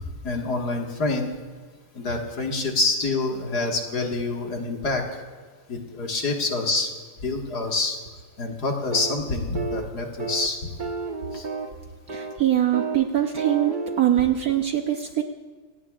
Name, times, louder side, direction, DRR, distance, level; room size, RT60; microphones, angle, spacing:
voice 1, 0.2-1.3 1.9-5.1 5.7-6.9 7.2-8.0 8.4-10.6 11.3-11.5, left 3 dB, 55° left, 1 dB, 2.2 m, -26 dB
sound 1, 8.9-9.2 9.5-9.9 10.2-10.5 10.8-11.8 12.1-12.4 12.7-13.0 13.4-14.0, right 4 dB, 35° right, 0.8 m, -31 dB
voice 2, 12.1-15.2, right 11 dB, 60° right, 5 dB, 1.0 m, -23 dB
27.5 x 17.5 x 2.4 m, 1.5 s
omnidirectional pair, 2.2 m